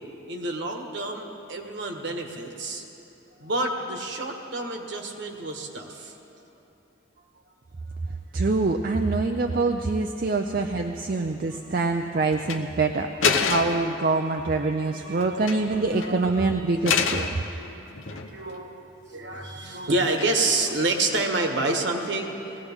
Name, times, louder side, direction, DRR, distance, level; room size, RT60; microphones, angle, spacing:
voice 1, 0.3-2.9 3.4-6.1 10.5-10.7 11.3-12.0 13.8-13.9 14.5-15.4 15.7-16.3 17.0-17.2 17.5-17.8 18.1-18.8 19.1-22.4, right 2 dB, 60° right, 2 dB, 1.4 m, -29 dB
voice 2, 8.3-17.4, right 3 dB, 45° right, 4 dB, 0.5 m, -25 dB
sound 1, 12.4-12.6 13.2-13.9 15.2-15.7 16.0-16.2 16.9-17.4 17.9-18.5 20.2-20.6, left 5 dB, 75° left, 0.8 m, -26 dB
20.0 x 17.0 x 3.6 m, 2.9 s
head